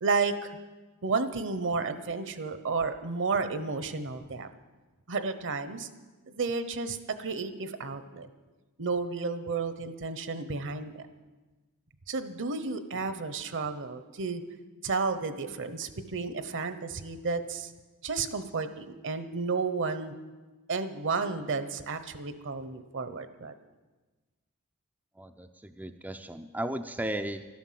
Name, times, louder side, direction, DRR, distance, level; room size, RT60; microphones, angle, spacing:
voice 1, 0.0-0.6 1.0-4.5 5.1-5.9 6.3-8.3 8.8-11.0 12.1-14.4 14.8-17.7 18.0-20.1 20.7-23.5, right 4 dB, 60° right, 11 dB, 1.0 m, -32 dB
voice 2, 25.2-27.4, right 1 dB, 5° right, 6 dB, 0.4 m, -35 dB
12.5 x 12.0 x 7.5 m, 1.2 s
head